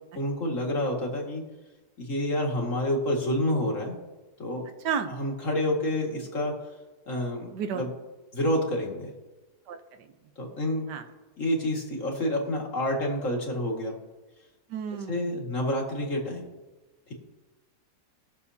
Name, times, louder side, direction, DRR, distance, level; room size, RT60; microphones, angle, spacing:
voice 1, 0.2-1.4 2.0-4.0 4.4-4.6 5.1-6.5 7.1-7.9 8.3-9.1 10.4-10.9 11.4-13.9 15.1-16.5 17.1-17.2, left 1 dB, 50° left, -1 dB, 2.3 m, -28 dB
voice 2, 7.5-7.8 9.7-10.1 10.9-11.0 14.7-15.4, right 7 dB, 85° right, 8 dB, 1.5 m, -32 dB
20.5 x 7.0 x 2.8 m, 1.2 s
omnidirectional pair, 1.8 m